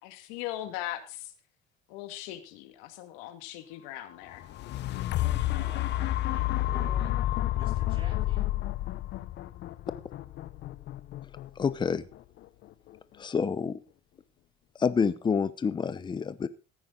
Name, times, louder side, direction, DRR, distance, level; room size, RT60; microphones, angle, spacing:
voice 1, 0.0-1.3 1.9-4.4, left 13 dB, 85° left, 9 dB, 2.1 m, -39 dB
sound 1, 4.3-12.4 12.9-13.0, left 14 dB, 55° left, 0.9 m, -30 dB
voice 2, 5.1-7.1 7.5-8.5, right 2 dB, 25° right, 1 dB, 7.0 m, -50 dB
voice 3, 11.6-12.0 13.2-13.8 14.8-16.5, left 6 dB, 20° left, 15 dB, 0.7 m, -28 dB
15.5 x 9.1 x 3.9 m, 0.34 s
supercardioid pair, 100°, 21 cm